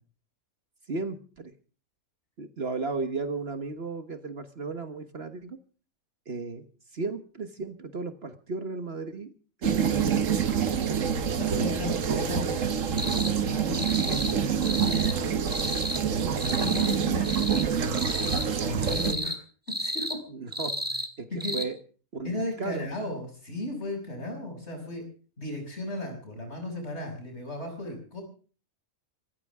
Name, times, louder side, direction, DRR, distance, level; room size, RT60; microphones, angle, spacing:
voice 1, 0.9-1.5 2.4-5.6 6.3-6.6 6.9-9.3 9.6-10.8 11.5-11.7 16.1-16.4 20.4-21.8 22.1-22.9, right 3 dB, 50° right, 9 dB, 1.5 m, -35 dB
sound 1, 9.6-19.1, right 7 dB, 65° right, 1.6 m, -27 dB
voice 2, 11.4-15.2 16.5-19.4 19.8-20.2 21.3-21.6 22.2-25.0 25.4-28.2, left 1 dB, 50° left, 3 dB, 6.8 m, -36 dB
sound 2, 13.0-13.3 13.7-14.3 14.6-15.2 15.5-16.0 16.4-17.0 17.2-17.7 17.9-18.5 18.8-19.4 19.7-20.2 20.5-21.1 21.4-21.6, equal, 5° right, 1.8 m, -32 dB
25.5 x 15.0 x 3.6 m, 0.39 s
omnidirectional pair, 1.4 m